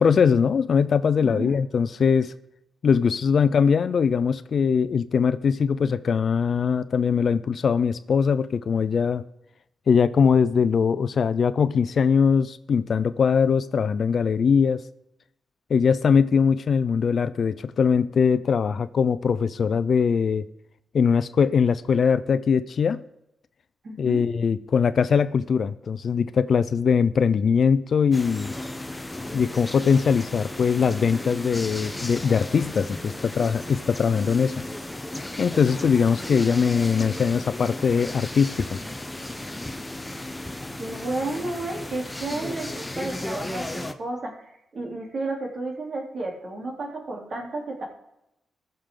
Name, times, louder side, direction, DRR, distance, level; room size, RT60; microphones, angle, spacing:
voice 1, 0.0-2.3 2.8-9.2 9.9-14.8 15.7-20.4 20.9-23.0 24.0-28.5 29.3-34.6 35.4-38.8, left 6 dB, 50° left, 0.5 m, -21 dB
voice 2, 1.2-1.5 23.8-24.3 40.8-47.8, right 2 dB, 45° right, 3.2 m, -32 dB
sound 1, 28.1-43.9, left 1 dB, 10° left, 0.8 m, -35 dB
20.0 x 6.7 x 3.8 m
wide cardioid pair, 140°, 0 cm